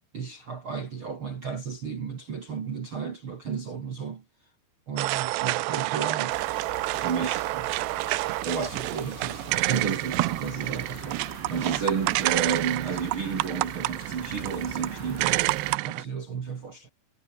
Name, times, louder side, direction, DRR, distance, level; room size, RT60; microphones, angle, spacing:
voice 1, 0.1-4.2 4.9-6.4 7.0-7.7 8.4-15.4 15.8-16.9, right 6 dB, 55° right, 1.5 m, -32 dB
sound 1, 5.0-16.0, right 21 dB, 80° right, 2.5 m, -29 dB
sound 2, 6.3-15.8, left 16 dB, 75° left, 3.2 m, -46 dB
omnidirectional pair, 5.4 m